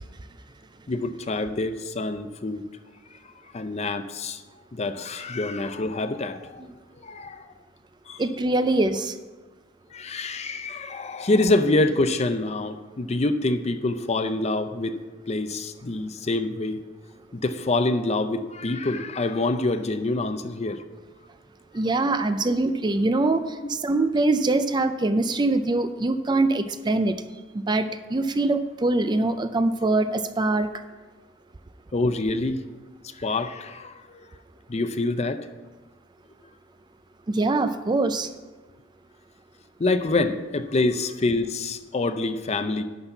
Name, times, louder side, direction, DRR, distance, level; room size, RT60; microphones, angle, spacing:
voice 1, 0.9-2.6 3.5-4.4 4.7-6.6 7.0-7.5 8.1-8.2 9.9-16.8 17.3-20.8 31.9-32.6 33.0-34.2 34.7-35.4 39.8-42.8, left 2 dB, 35° left, 10 dB, 0.5 m, -26 dB
voice 2, 8.2-9.1 21.7-27.2 27.7-30.7 37.3-38.3, right 2 dB, 20° right, 10 dB, 0.4 m, -23 dB
11.5 x 4.2 x 7.9 m, 1.3 s
head